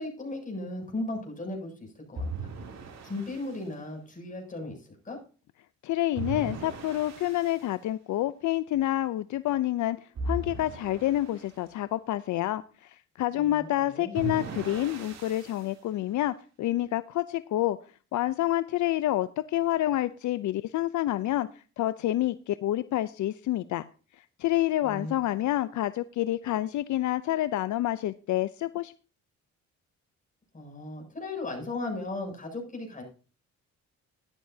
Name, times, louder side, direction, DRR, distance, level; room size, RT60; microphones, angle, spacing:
voice 1, 0.0-2.5 3.0-5.2 13.3-14.2 24.8-25.1 30.5-33.0, left 2 dB, 25° left, 2 dB, 7.5 m, -36 dB
sound 1, 2.2-3.6 6.1-7.7 10.2-11.5 14.1-15.7, right 2 dB, 60° right, 3.1 m, -37 dB
voice 2, 5.8-17.8 18.1-21.5 21.8-23.8 24.2-28.9, left 14 dB, 70° left, 14 dB, 0.6 m, -28 dB
13.5 x 11.5 x 2.8 m, 0.36 s
cardioid pair, 90°, 30 cm